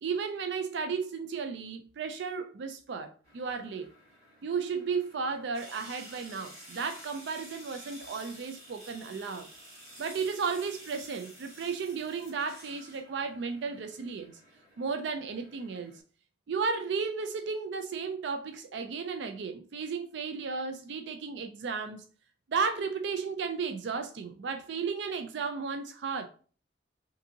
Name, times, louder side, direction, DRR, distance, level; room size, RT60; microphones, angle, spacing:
voice 1, 0.0-3.9 4.4-9.5 10.0-14.4 14.8-15.9 16.5-22.0 22.5-26.3, right 5 dB, 70° right, 0.4 m, -34 dB
sound 1, 3.2-16.0, equal, 35° right, 2.0 m, -51 dB
5.2 x 2.6 x 2.7 m
head